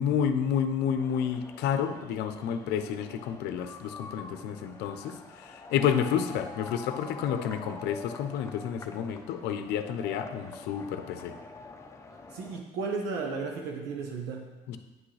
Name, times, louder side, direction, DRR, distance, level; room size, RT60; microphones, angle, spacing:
voice 1, 0.0-11.3 14.7-14.8, left 8 dB, 75° left, 9 dB, 0.7 m, -30 dB
sound 1, 1.0-12.6, left 3 dB, 15° left, 0.7 m, -46 dB
voice 2, 12.3-14.5, right 4 dB, 85° right, 0 dB, 1.0 m, -34 dB
9.2 x 6.1 x 3.3 m, 1.2 s
cardioid pair, 100°, 17 cm